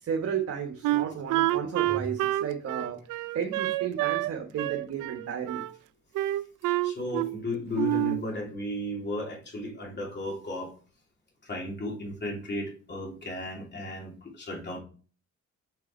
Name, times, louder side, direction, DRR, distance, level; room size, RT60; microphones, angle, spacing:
voice 1, 0.0-3.0 3.3-5.6, right 7 dB, 50° right, 2 dB, 1.3 m, -33 dB
Wind instrument woodwind instrument, 0.8-4.3 4.6-5.7 6.1-7.4 7.7-8.2, right 16 dB, 85° right, 0.5 m, -28 dB
voice 2, 6.8-10.7 11.4-14.8, left 1 dB, 35° left, -1 dB, 2.9 m, -34 dB
6.1 x 4.7 x 4.4 m, 0.39 s
cardioid pair, 90°, 30 cm